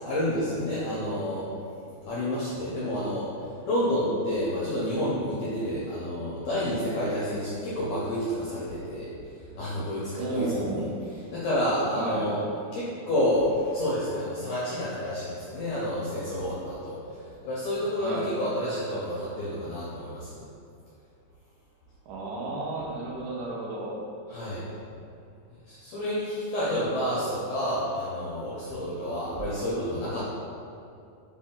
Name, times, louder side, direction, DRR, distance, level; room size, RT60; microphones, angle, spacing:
voice 1, 0.1-1.4 2.0-3.3 3.6-9.1 9.5-10.9 11.3-12.4 12.7-17.0 17.4-20.4 24.3-24.6 25.7-30.2, equal, 80° left, -8 dB, 1.4 m, -29 dB
voice 2, 10.2-10.9 11.9-12.3 18.0-18.3 22.1-24.0, right 2 dB, 80° right, -3 dB, 2.0 m, -32 dB
5.3 x 2.3 x 3.6 m, 2.5 s
omnidirectional pair, 3.6 m